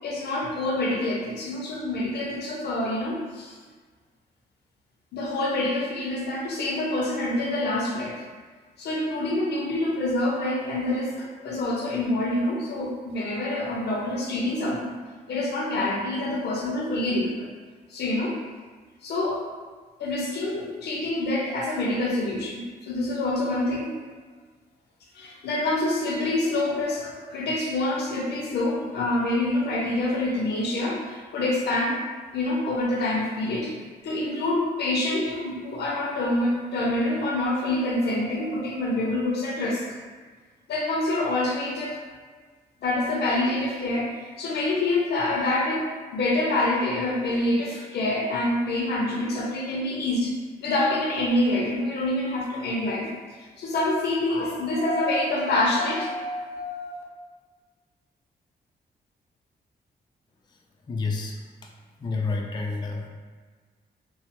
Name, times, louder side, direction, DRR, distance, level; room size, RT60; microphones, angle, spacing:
voice 1, 0.0-3.5 5.1-8.2 8.8-14.9 15.3-17.5 17.9-18.4 19.0-19.4 20.0-24.0 25.1-32.0 32.3-33.7 34.0-40.0 40.7-42.0 42.8-50.3 50.6-53.1 53.4-57.0, left 1 dB, 85° left, -2 dB, 0.6 m, -26 dB
voice 2, 60.9-61.3 62.0-63.1, left 3 dB, 25° left, 0 dB, 0.4 m, -29 dB
3.1 x 2.0 x 2.9 m, 1.5 s
cardioid pair, 90°, 17 cm